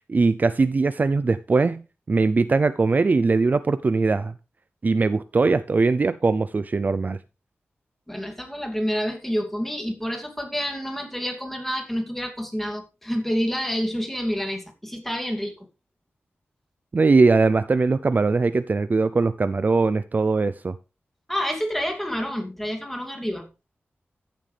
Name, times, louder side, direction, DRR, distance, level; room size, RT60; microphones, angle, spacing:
voice 1, 0.1-4.3 4.8-7.2 16.9-20.8, right 3 dB, 40° right, 0.5 m, -21 dB
voice 2, 8.1-15.5 21.3-23.5, equal, 5° left, 2.6 m, -28 dB
14.5 x 7.4 x 3.4 m
wide cardioid pair, 110°, 4 cm